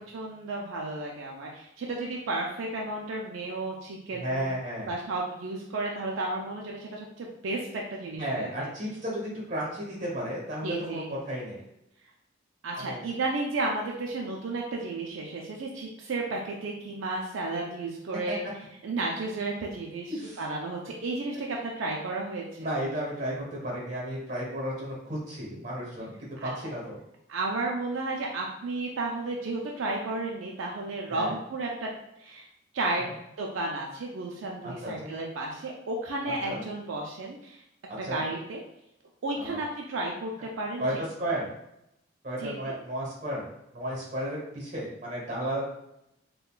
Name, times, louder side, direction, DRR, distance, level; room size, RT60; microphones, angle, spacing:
voice 1, 0.0-4.5 4.9-8.7 10.6-11.1 12.6-18.4 18.8-22.4 26.4-26.5 27.3-31.9 32.2-32.5 32.7-33.1 33.4-37.6 38.0-38.6 39.2-40.8 41.2-41.3 42.4-42.7, right 2 dB, 80° right, -1 dB, 0.4 m, -33 dB
voice 2, 4.1-4.9 8.2-11.6 12.8-13.0 18.3-18.4 20.1-20.4 22.6-27.0 31.1-31.4 33.0-33.1 34.6-35.1 36.4-36.6 37.9-38.2 39.4-39.6 40.8-41.5 42.2-43.5 43.7-45.7, right 1 dB, 40° right, -3 dB, 1.1 m, -33 dB
3.7 x 2.2 x 2.4 m, 0.81 s
head